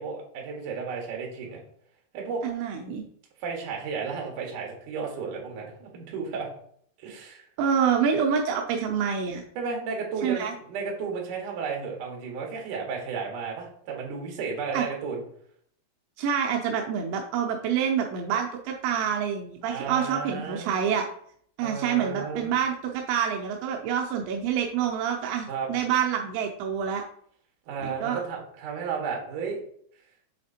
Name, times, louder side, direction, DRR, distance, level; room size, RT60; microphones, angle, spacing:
voice 1, 0.0-1.6 2.1-2.4 3.4-6.5 7.0-7.4 9.6-15.2 19.6-20.7 21.6-22.5 25.5-25.7 27.7-29.6, right 5 dB, 60° right, 0 dB, 2.3 m, -33 dB
voice 2, 2.4-3.0 7.6-9.4 10.2-10.5 14.7-14.9 16.2-21.1 21.6-27.0 27.8-28.2, right 7 dB, 90° right, 1 dB, 2.5 m, -27 dB
7.4 x 4.2 x 4.3 m, 0.63 s
omnidirectional pair, 5.8 m